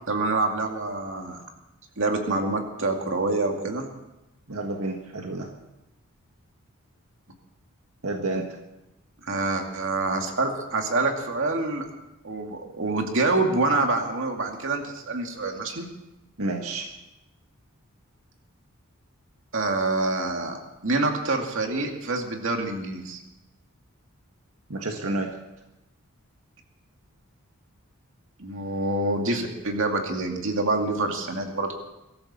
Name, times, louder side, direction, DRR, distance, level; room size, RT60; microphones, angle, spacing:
voice 1, 0.1-1.4 2.0-3.9 9.3-11.9 12.2-15.9 19.5-20.6 20.8-23.2 28.4-31.7, right 2 dB, 65° right, 3 dB, 2.4 m, -26 dB
voice 2, 4.5-5.5 8.0-8.6 16.4-16.9 24.7-25.4, right 2 dB, 90° right, 2 dB, 1.7 m, -30 dB
23.5 x 14.0 x 4.4 m, 0.94 s
head